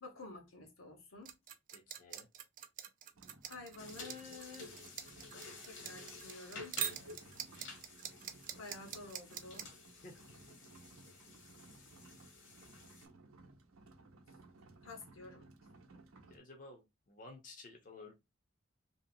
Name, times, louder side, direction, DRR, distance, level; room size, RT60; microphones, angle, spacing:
voice 1, 0.0-1.3 3.4-4.8 5.6-6.8 8.6-9.7 14.8-15.5, left 3 dB, 80° left, 1.1 m, -50 dB
sound 1, 1.3-9.6, right 9 dB, 40° right, 0.4 m, -43 dB
voice 2, 1.7-2.3 10.0-10.2 16.3-18.1, left 2 dB, 40° left, 0.6 m, -54 dB
sound 2, 3.1-16.4, right 2 dB, 90° right, 0.6 m, -60 dB
sound 3, 3.8-13.1, left 3 dB, 60° left, 1.0 m, -52 dB
2.9 x 2.7 x 2.6 m
head